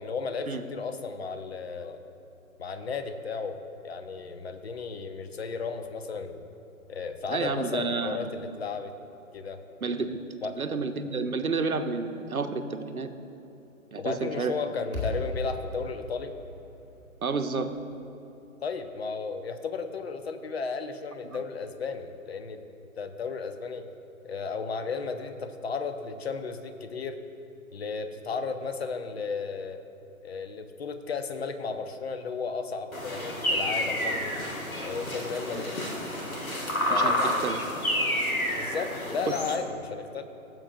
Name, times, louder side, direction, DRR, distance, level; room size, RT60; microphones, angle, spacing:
voice 1, 0.0-2.0 2.6-6.5 6.9-8.9 9.3-9.6 10.4-10.6 14.0-16.4 18.6-22.6 23.0-23.9 24.2-27.2 27.7-29.8 30.2-34.4 34.8-35.9 36.9-37.6 38.6-40.2, left 5 dB, 50° left, 8 dB, 0.8 m, -34 dB
voice 2, 7.3-8.3 9.8-10.2 10.6-13.1 13.9-14.5 17.2-17.7 21.2-21.4 35.5-35.6 36.9-37.6 39.3-39.4, right 4 dB, 85° right, 8 dB, 0.9 m, -30 dB
sound 1, 14.9-19.2, left 1 dB, 10° left, 1.6 m, -38 dB
sound 2, 32.9-39.6, left 1 dB, 80° left, 1.8 m, -29 dB
17.0 x 7.7 x 2.7 m, 2.9 s
figure-of-eight pair, 140°, 41 cm